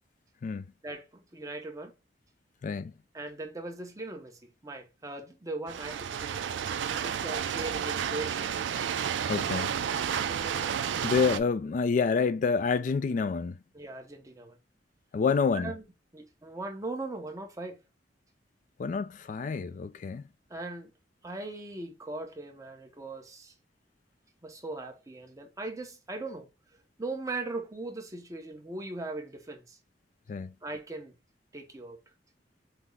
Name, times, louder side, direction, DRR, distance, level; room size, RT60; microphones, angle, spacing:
voice 1, 0.8-1.9 3.1-8.5 10.1-10.7 13.7-14.6 15.5-15.8 16.1-17.8 20.5-20.9 21.2-23.5 24.4-26.5 27.0-29.8 30.6-31.1 31.5-32.0, right 2 dB, 20° right, 0.8 m, -39 dB
voice 2, 2.6-2.9 9.3-9.7 11.0-13.6 15.1-15.7 18.8-20.2 30.3-30.5, left 5 dB, 45° left, 0.3 m, -28 dB
sound 1, 5.7-11.4, right 8 dB, 85° right, 0.4 m, -31 dB
5.8 x 2.0 x 3.3 m
head